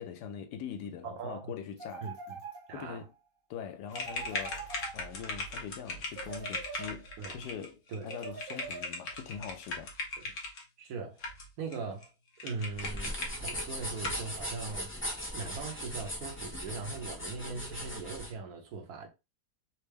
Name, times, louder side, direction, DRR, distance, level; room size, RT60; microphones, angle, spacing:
voice 1, 0.0-2.1 2.7-3.1 3.5-9.9, left 8 dB, 90° left, 1.2 m, -43 dB
voice 2, 1.0-1.5 2.0-2.1 2.7-3.0 7.2-7.4 7.9-8.1 10.2-10.3 10.8-11.2 11.6-12.1 12.4-14.9 15.3-19.1, right 4 dB, 70° right, 1.2 m, -40 dB
sound 1, 1.8-3.1 3.9-5.4 6.1-7.3 8.1-9.3, right 4 dB, 50° right, 0.6 m, -45 dB
sound 2, 3.9-10.6 11.2-11.8 12.0-12.1 12.4-13.6 14.0-14.3, left 2 dB, 55° left, 1.2 m, -39 dB
sound 3, 12.7-18.3, equal, 10° left, 0.6 m, -39 dB
4.4 x 2.0 x 3.2 m
omnidirectional pair, 1.7 m